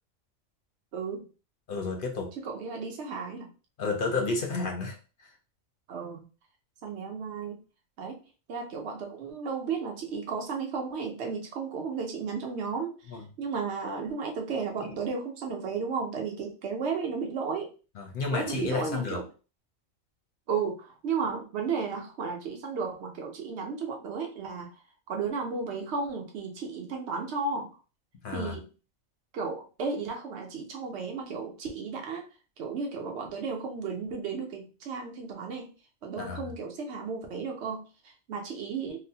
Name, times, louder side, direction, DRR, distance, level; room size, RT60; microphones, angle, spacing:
voice 1, 0.9-1.3 2.4-3.5 5.9-6.2 6.8-7.6 8.0-8.2 8.5-17.7 18.3-19.2 20.5-24.7 25.1-27.7 28.3-28.6 29.3-32.2 32.6-35.7 36.0-39.0, right 5 dB, 60° right, 2 dB, 1.0 m, -34 dB
voice 2, 1.7-2.3 3.8-5.3 13.1-13.2 14.8-15.0 18.0-19.2 28.2-28.6 36.2-36.5, left 4 dB, 50° left, 2 dB, 0.7 m, -31 dB
3.8 x 2.1 x 2.7 m, 0.34 s
omnidirectional pair, 1.4 m